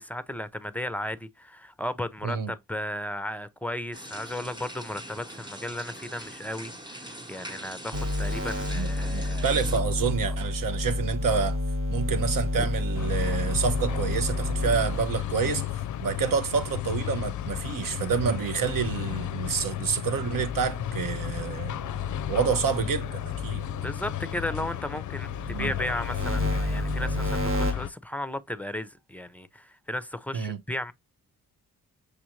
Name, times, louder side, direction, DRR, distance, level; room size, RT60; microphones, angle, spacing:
voice 1, 0.0-9.6 10.2-10.3 12.6-12.7 23.8-30.9, left 1 dB, 5° left, 0.5 m, -35 dB
sound 1, 3.9-9.8, right 1 dB, 15° right, 1.0 m, -42 dB
sound 2, 7.9-15.4 17.4-19.5 20.0-24.8 25.2-27.7, left 1 dB, 35° right, 1.2 m, -31 dB
voice 2, 8.7-11.6 11.9-15.7 16.0-21.7 22.3-23.6 25.5-25.7 30.3-30.6, right 6 dB, 65° right, 0.8 m, -28 dB
sound 3, 12.9-27.9, left 12 dB, 60° left, 0.5 m, -34 dB
6.4 x 2.5 x 2.9 m
cardioid pair, 70°, 35 cm